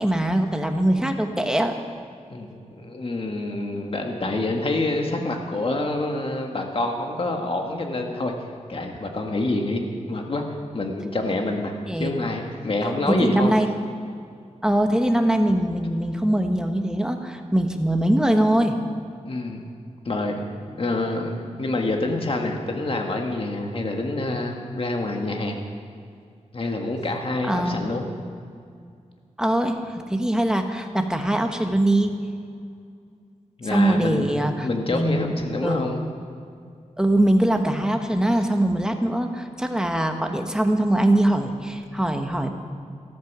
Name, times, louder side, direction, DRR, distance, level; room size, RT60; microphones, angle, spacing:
voice 1, 0.0-1.7 11.9-12.1 13.1-13.7 14.6-18.8 27.5-28.0 29.4-32.1 33.7-35.3 35.6-35.9 37.0-42.5, right 1 dB, 5° right, 4 dB, 1.2 m, -22 dB
voice 2, 2.3-8.3 8.7-9.8 10.1-10.4 10.7-13.5 19.2-19.7 20.1-20.4 20.7-25.6 26.5-28.1 33.6-36.0, left 2 dB, 45° left, 2 dB, 1.7 m, -27 dB
14.0 x 14.0 x 6.1 m, 2.3 s
wide cardioid pair, 115°, 13 cm